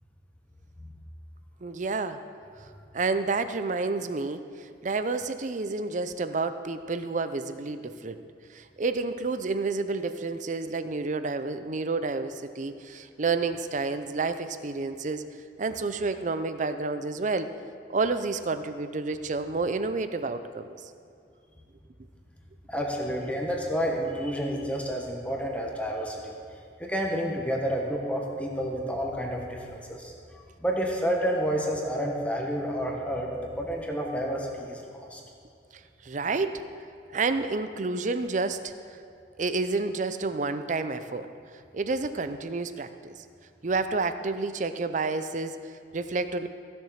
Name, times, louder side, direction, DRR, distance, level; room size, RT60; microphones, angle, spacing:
voice 1, 1.6-2.2 2.6-2.7 2.9-8.2 8.5-15.3 15.6-17.5 17.9-20.7 35.7-36.6 37.1-38.7 39.4-41.3 41.7-43.1 43.6-46.5, right 3 dB, 45° right, 10 dB, 0.6 m, -30 dB
voice 2, 22.7-26.4 26.8-30.1 30.6-35.2, equal, 10° left, -1 dB, 1.4 m, -30 dB
15.5 x 7.0 x 5.7 m, 2.4 s
head